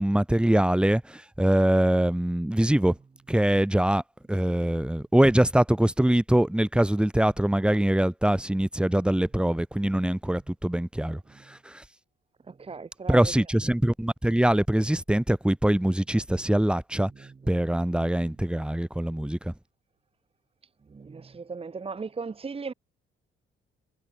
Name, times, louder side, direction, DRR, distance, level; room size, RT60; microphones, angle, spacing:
voice 1, 0.0-3.0 3.3-4.0 4.3-11.2 11.5-11.8 13.1-17.1 17.5-19.5, right 1 dB, 5° right, 2.2 m, -23 dB
voice 2, 12.5-13.3 20.9-22.7, right 4 dB, 30° right, 1.5 m, -37 dB
cardioid pair, 90°, 20 cm